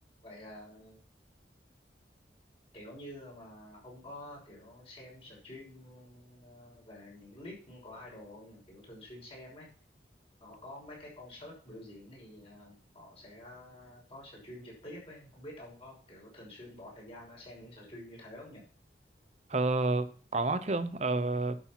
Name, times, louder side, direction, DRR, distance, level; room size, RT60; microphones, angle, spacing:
voice 1, 0.2-1.0 2.7-9.7 10.4-18.6, left 1 dB, 35° left, 6.2 m, -49 dB
voice 2, 19.5-21.6, right 2 dB, 40° right, 0.9 m, -29 dB
11.5 x 6.6 x 6.0 m
head